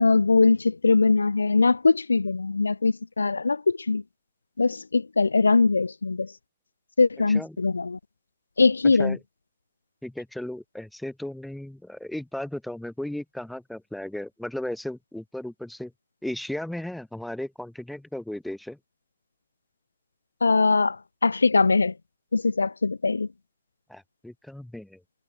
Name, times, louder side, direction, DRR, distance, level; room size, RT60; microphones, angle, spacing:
voice 1, 0.0-4.0 4.6-6.3 7.0-8.0 8.6-9.2 20.4-21.0 21.2-21.9 22.3-23.3, left 4 dB, 90° left, 2.5 m, -21 dB
voice 2, 10.0-15.9 16.2-18.8 23.9-25.0, left 1 dB, ahead, 3.2 m, -35 dB
hypercardioid pair, 130°, 0 cm